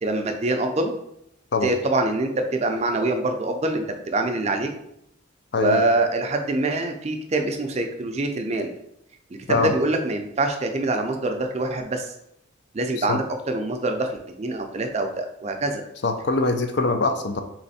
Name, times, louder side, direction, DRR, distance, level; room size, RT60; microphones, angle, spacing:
voice 1, 0.0-0.9 1.6-4.7 5.6-8.7 9.5-12.1 12.7-14.1 14.4-15.8, right 2 dB, 30° right, 5 dB, 0.4 m, -24 dB
voice 2, 16.0-17.4, left 3 dB, 55° left, 6 dB, 0.5 m, -23 dB
3.5 x 3.2 x 4.1 m, 0.78 s
head